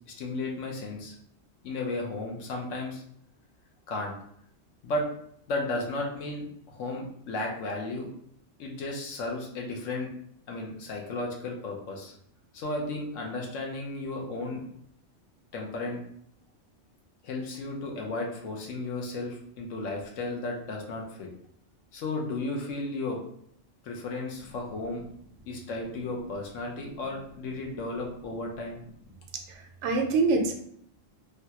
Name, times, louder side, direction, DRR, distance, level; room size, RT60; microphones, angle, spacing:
voice 1, 0.1-1.1 1.6-3.0 3.9-4.1 4.8-5.0 5.5-8.1 8.6-10.1 10.5-12.1 12.5-14.7 15.5-16.0 17.2-21.3 21.9-23.2 23.8-25.0 25.5-28.8, left 2 dB, 80° left, 0 dB, 1.0 m, -34 dB
voice 2, 29.5-30.5, right 3 dB, 70° right, 4 dB, 0.9 m, -25 dB
3.2 x 2.3 x 2.8 m, 0.68 s
omnidirectional pair, 1.3 m